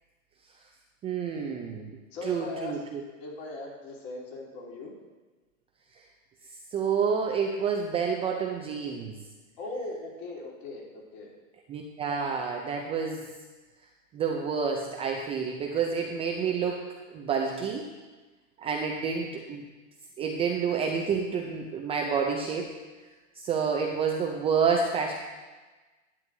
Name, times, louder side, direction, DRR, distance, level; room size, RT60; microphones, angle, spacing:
voice 1, 1.0-1.9 2.2-3.0 6.7-9.2 11.7-13.3 14.1-16.8 17.1-17.9 18.6-19.6 20.2-22.7 23.4-25.1, right 6 dB, 15° right, 1 dB, 0.4 m, -29 dB
voice 2, 2.1-2.7 3.2-4.9 9.6-11.3, left 2 dB, 50° left, -3 dB, 3.3 m, -39 dB
11.0 x 9.5 x 2.7 m, 1.2 s
hypercardioid pair, 125°, 40 cm